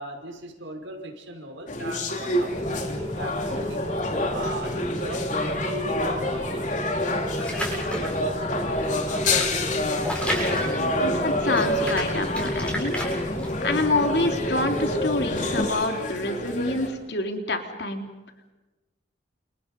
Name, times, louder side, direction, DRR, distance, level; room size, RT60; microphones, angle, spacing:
voice 1, 0.0-3.9 4.3-9.5, right 1 dB, 90° right, 3 dB, 5.8 m, -39 dB
sound 1, 1.7-16.9, left 1 dB, 40° left, 3.6 m, -28 dB
Rain, 2.5-15.6, left 1 dB, 25° left, 1.6 m, -33 dB
sound 2, 7.4-8.2 8.8-11.3 11.5-13.5, equal, 5° left, 7.8 m, -31 dB
voice 2, 10.8-13.0 13.6-18.0, left 2 dB, 60° left, 4 dB, 3.5 m, -27 dB
29.5 x 29.0 x 5.5 m, 1.1 s
head